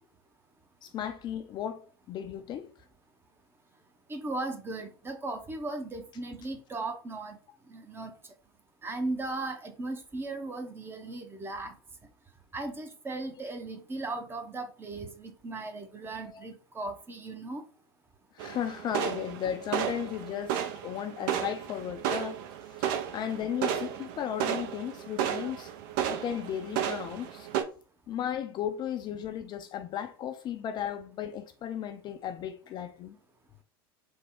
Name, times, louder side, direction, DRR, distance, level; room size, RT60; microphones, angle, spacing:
voice 1, 0.8-2.7 16.3-16.4 18.3-22.4 23.1-25.7 26.1-27.5 28.1-33.2, left 9 dB, 35° left, 0.4 m, -35 dB
voice 2, 4.1-7.4 7.7-8.1 8.8-11.7 12.5-17.6, right 2 dB, 15° right, 0.7 m, -37 dB
sound 1, 18.4-27.6, right 9 dB, 55° right, 0.5 m, -33 dB
3.4 x 2.2 x 3.6 m
figure-of-eight pair, 80°, 13 cm